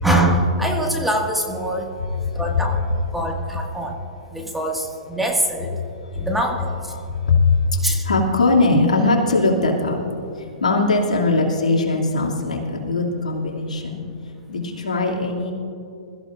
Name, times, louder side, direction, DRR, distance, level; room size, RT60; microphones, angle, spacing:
voice 1, 0.0-1.9 2.4-2.8 3.1-3.9 4.3-5.7 6.2-6.6 7.8-8.0, right 1 dB, 5° right, 0 dB, 1.9 m, -23 dB
voice 2, 7.0-7.5 7.8-10.0 10.6-14.0 14.5-15.5, left 3 dB, 90° left, -1 dB, 2.6 m, -20 dB
23.0 x 14.0 x 2.6 m, 2.7 s
hypercardioid pair, 125°, 4 cm